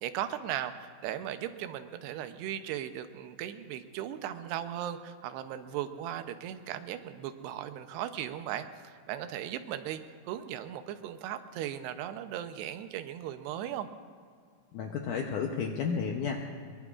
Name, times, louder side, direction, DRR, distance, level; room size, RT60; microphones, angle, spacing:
voice 1, 0.0-10.0 10.3-13.9, right 11 dB, 90° right, 9 dB, 2.9 m, -37 dB
voice 2, 14.7-16.7, left 6 dB, 80° left, 2 dB, 1.8 m, -32 dB
23.0 x 22.5 x 2.4 m, 2.1 s
omnidirectional pair, 4.7 m